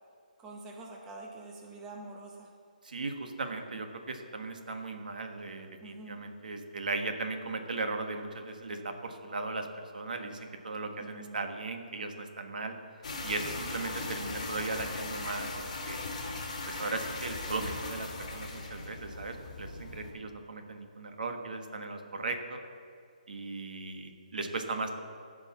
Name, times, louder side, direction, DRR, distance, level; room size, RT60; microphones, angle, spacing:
voice 1, 0.4-2.5 5.8-6.2 11.0-11.4, right 2 dB, 10° right, -1 dB, 0.7 m, -46 dB
voice 2, 2.8-12.7 13.2-16.1 16.7-22.6 23.3-25.0, right 3 dB, 70° right, 5 dB, 1.4 m, -37 dB
sound 1, 13.0-20.1, left 3 dB, 40° left, 2.3 m, -39 dB
14.5 x 5.2 x 7.2 m, 2.2 s
hypercardioid pair, 175°, 5 cm